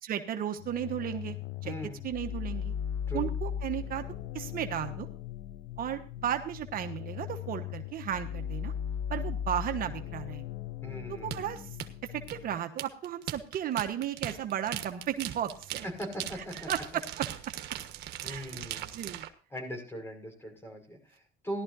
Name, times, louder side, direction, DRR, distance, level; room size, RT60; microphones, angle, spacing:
voice 1, 0.0-1.4 1.6-1.7 2.0-2.7 3.1-5.1 5.8-8.7 9.1-10.4 11.1-11.8 12.1-15.9 16.4-17.3 18.2-18.6 18.9-19.3, right 10 dB, 60° right, 7 dB, 1.2 m, -34 dB
sound 1, 0.6-12.5, left 9 dB, 85° left, 0.6 m, -38 dB
voice 2, 1.6-2.0 3.1-3.3 10.8-11.6 16.0-17.0 18.2-18.9 19.5-21.6, equal, 15° left, 4 dB, 5.7 m, -40 dB
sound 2, 11.3-19.3, right 12 dB, 75° right, 1.4 m, -39 dB
17.0 x 12.0 x 2.7 m, 0.38 s
cardioid pair, 110°, 17 cm